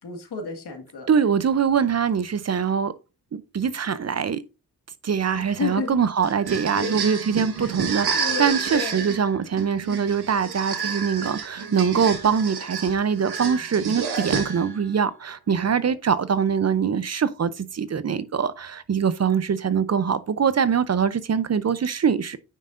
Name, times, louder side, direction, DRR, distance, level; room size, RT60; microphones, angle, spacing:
voice 1, 0.0-1.1 5.3-6.0 6.8-7.0 7.6-7.8 8.1-9.0 11.9-12.1 15.5-15.9, left 5 dB, 85° left, 1.9 m, -32 dB
voice 2, 1.1-2.9 3.3-4.4 5.0-22.4, right 7 dB, 40° right, 0.5 m, -23 dB
sound 1, 6.2-14.9, right 5 dB, 75° right, 1.6 m, -30 dB
9.2 x 5.5 x 2.5 m
wide cardioid pair, 105°, 39 cm